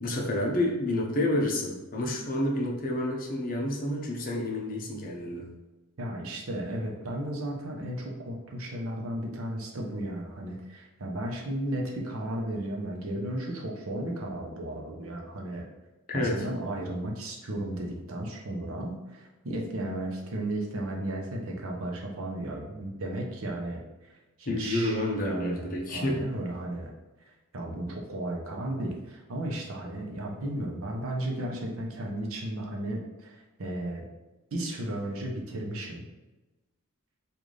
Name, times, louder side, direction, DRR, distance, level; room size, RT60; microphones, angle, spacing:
voice 1, 0.0-5.5 16.1-16.5 24.5-26.2, left 1 dB, 40° left, 0 dB, 0.6 m, -29 dB
voice 2, 6.0-15.6 16.1-23.8 24.1-26.9 27.5-34.0 34.5-36.0, right 1 dB, 80° right, 0 dB, 0.7 m, -34 dB
3.2 x 2.5 x 3.8 m, 1.1 s
head